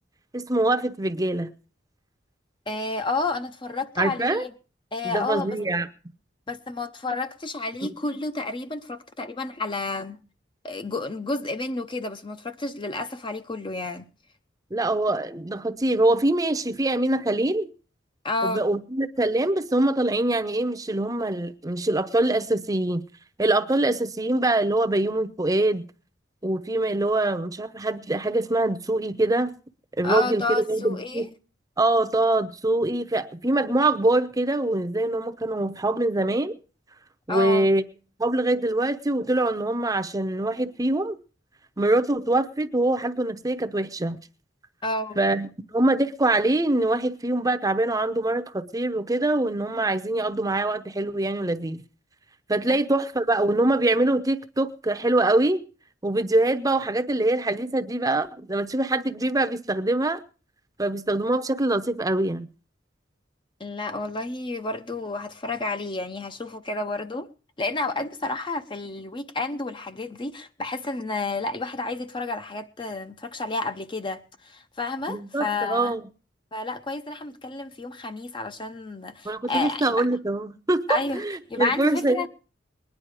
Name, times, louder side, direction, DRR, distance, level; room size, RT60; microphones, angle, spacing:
voice 1, 0.3-1.5 4.0-4.5 5.0-5.9 7.8-7.9 14.7-17.7 18.4-23.0 23.4-25.9 26.4-29.5 30.0-31.3 31.8-36.6 37.3-37.8 38.2-41.2 41.8-44.2 45.2-51.8 52.5-55.6 56.0-60.2 60.8-62.5 75.1-76.0 79.2-82.3, right 2 dB, 20° right, 0.8 m, -24 dB
voice 2, 2.7-4.5 4.9-5.6 6.5-10.2 10.6-14.1 18.2-18.6 30.0-31.3 37.3-37.7 44.8-45.2 52.7-52.8 63.6-67.3 67.6-76.0 76.5-80.1 80.9-81.2 81.5-82.3, left 2 dB, 25° left, 0.7 m, -30 dB
20.5 x 10.5 x 4.9 m
head